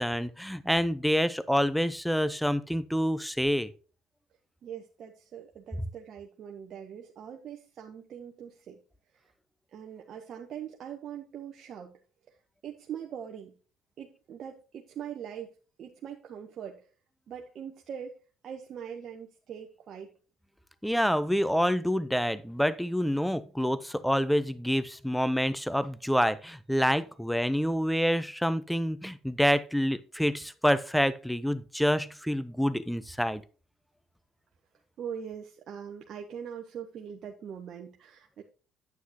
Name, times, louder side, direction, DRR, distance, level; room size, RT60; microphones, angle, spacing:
voice 1, 0.0-3.7 20.8-33.4, equal, ahead, 0.7 m, -27 dB
voice 2, 4.6-8.8 9.1-9.3 9.7-12.0 12.3-12.4 12.6-13.5 14.0-15.5 15.8-16.9 17.3-18.2 18.4-20.1 35.0-38.4, right 8 dB, 55° right, 1.0 m, -42 dB
9.3 x 8.3 x 2.9 m
hypercardioid pair, 60°, 0 cm